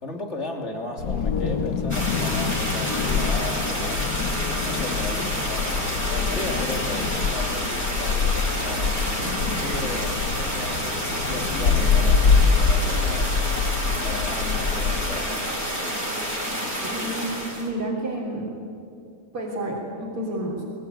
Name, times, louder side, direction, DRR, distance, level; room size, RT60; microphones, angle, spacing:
voice 1, 0.0-4.0 4.6-9.0 9.6-13.4 14.0-15.4, left 2 dB, 30° left, 2 dB, 3.2 m, -36 dB
Wind, 1.0-15.2, left 5 dB, 55° left, 1.5 m, -25 dB
sound 1, 1.9-17.7, equal, 5° right, 6.6 m, -29 dB
voice 2, 16.8-18.5 19.3-20.6, right 1 dB, 85° right, -4 dB, 4.5 m, -30 dB
24.0 x 24.0 x 9.7 m, 2.5 s
omnidirectional pair, 2.3 m